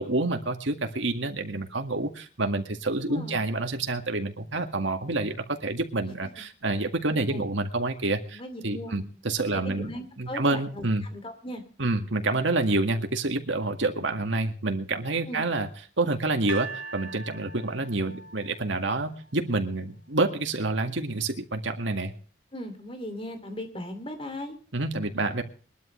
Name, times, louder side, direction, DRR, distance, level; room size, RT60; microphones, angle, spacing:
voice 1, 0.0-9.9 10.2-11.1 11.8-15.7 16.0-22.1 24.7-25.4, right 2 dB, 75° right, 5 dB, 1.9 m, -28 dB
voice 2, 3.0-3.4 7.1-7.5 8.3-9.1 9.6-11.6 15.3-15.4 22.5-24.6, left 1 dB, 30° left, 7 dB, 2.6 m, -38 dB
sound 1, 16.5-19.7 20.4-20.5, right 4 dB, 75° left, 1.9 m, -41 dB
22.0 x 12.5 x 3.2 m, 0.38 s
head